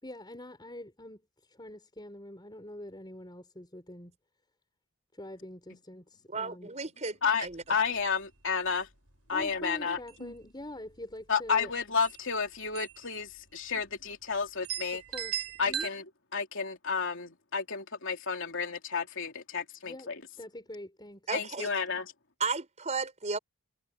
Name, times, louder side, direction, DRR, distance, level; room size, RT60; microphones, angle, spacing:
voice 1, 0.0-4.1 5.2-6.7 9.3-11.7 13.7-13.8 15.1-15.3 15.6-15.9 19.8-20.1 20.4-21.3, left 1 dB, 20° left, 6.2 m, -44 dB
voice 2, 6.3-7.6 21.3-21.7 22.4-23.4, right 4 dB, 30° right, 5.2 m, -34 dB
voice 3, 7.2-8.9 9.3-10.3 11.3-15.0 15.6-16.0 16.3-20.2 21.3-22.1, left 5 dB, 60° left, 3.6 m, -31 dB
sound 1, 7.5-7.7 8.0-8.1 8.5-8.9 9.4-9.6 9.9-10.6 11.7-11.8 12.0-12.2 12.8-13.1 13.3-13.4 14.1-14.2 14.6-15.9, right 9 dB, 75° right, 4.2 m, -37 dB
head